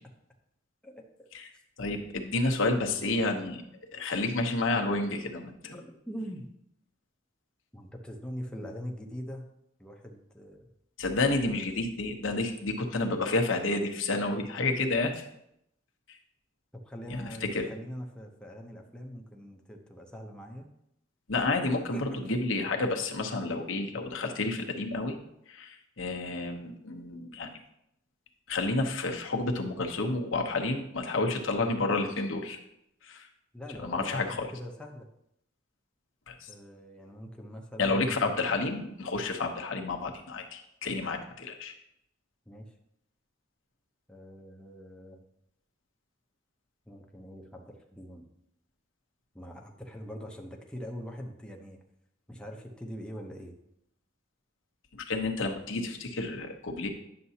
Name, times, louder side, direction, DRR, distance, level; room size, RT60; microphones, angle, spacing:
voice 1, 0.8-1.3 5.7-6.5 7.7-9.5 9.8-10.7 16.8-20.7 21.9-22.4 33.5-35.1 36.5-38.4 42.5-42.7 44.1-45.2 46.9-48.2 49.3-51.8 52.3-53.5, equal, 5° left, 1 dB, 0.8 m, -42 dB
voice 2, 1.8-3.6 3.9-5.7 11.0-15.3 16.1-16.2 17.2-17.7 21.3-25.2 25.5-27.5 28.5-32.6 33.0-33.3 33.8-34.5 36.3-36.5 37.8-41.7 54.9-56.9, left 2 dB, 80° left, 2 dB, 0.9 m, -30 dB
9.5 x 6.8 x 2.8 m, 0.79 s
head